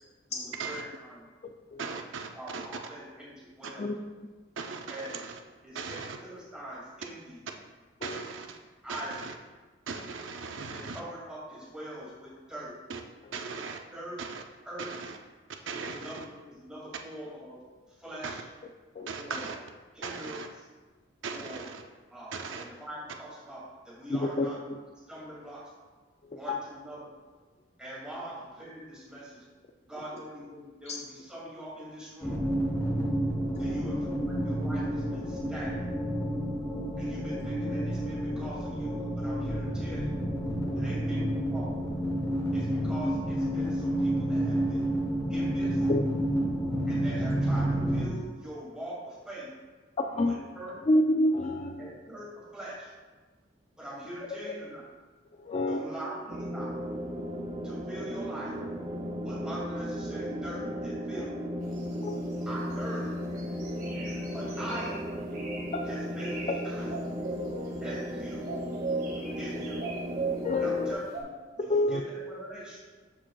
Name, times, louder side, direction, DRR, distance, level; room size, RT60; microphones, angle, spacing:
voice 1, 0.3-1.3 2.3-3.9 4.9-5.2 5.6-7.5 8.8-9.3 10.5-12.8 13.9-14.2 14.6-14.9 15.7-17.7 18.0-18.4 19.1-19.5 19.9-20.7 21.3-21.7 22.1-24.8 25.1-25.7 26.3-27.1 27.8-29.4 29.9-32.5 33.6-35.8 37.0-40.2 40.8-41.8 42.5-44.9 45.3-45.9 46.9-49.5 50.2-50.8 51.8-52.9 53.8-54.9 55.7-56.7 57.6-58.6 59.2-61.3 62.5-63.1 64.3-65.1 65.8-67.1 67.8-68.5 69.4-69.8 70.6-71.3 71.6-72.8, right 1 dB, 5° right, 2.3 m, -43 dB
voice 2, 1.8-2.7 4.6-5.3 5.7-6.2 8.0-8.6 8.9-9.3 9.9-11.0 12.9-13.0 13.3-13.8 14.2-14.4 14.8-15.2 15.7-16.1 18.2-18.4 19.1-19.6 20.0-20.5 21.2-21.8 22.3-22.6, right 5 dB, 85° right, 0.6 m, -38 dB
voice 3, 24.1-24.5 26.5-26.6 30.9-31.0 33.6-33.8 40.7-40.8 45.9-46.0 50.0-50.5 50.9-51.9 54.4-54.5 55.5-55.8 61.2-61.3 62.0-62.2 65.5-65.9 66.5-66.6 67.5-67.7 69.0-69.4 70.4-71.0 71.7-72.0, left 1 dB, 35° left, 0.4 m, -28 dB
sound 1, 32.2-48.0, right 1 dB, 15° left, 1.2 m, -30 dB
sound 2, 56.3-70.9, equal, 25° right, 0.6 m, -35 dB
sound 3, 61.7-62.9 63.3-64.9 65.3-65.7 66.1-66.5 66.8-68.1 68.5-70.5 71.1-71.2, right 4 dB, 50° right, 2.1 m, -37 dB
12.5 x 4.9 x 2.3 m
head